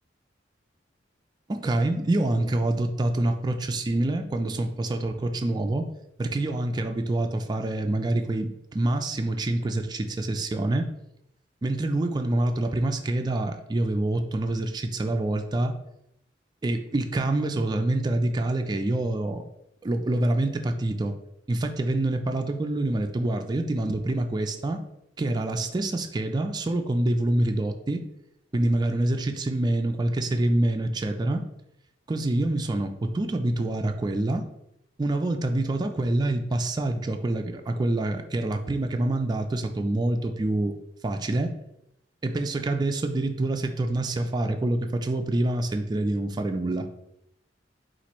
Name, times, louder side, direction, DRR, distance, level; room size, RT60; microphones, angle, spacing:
voice 1, 1.5-5.9 6.2-10.9 11.6-15.7 16.6-19.4 19.8-21.1 21.5-24.8 25.2-28.0 28.5-31.4 32.1-34.5 35.0-40.7 41.0-41.5 42.2-46.9, right 2 dB, 25° right, 4 dB, 0.3 m, -26 dB
4.3 x 2.5 x 4.2 m, 0.81 s
head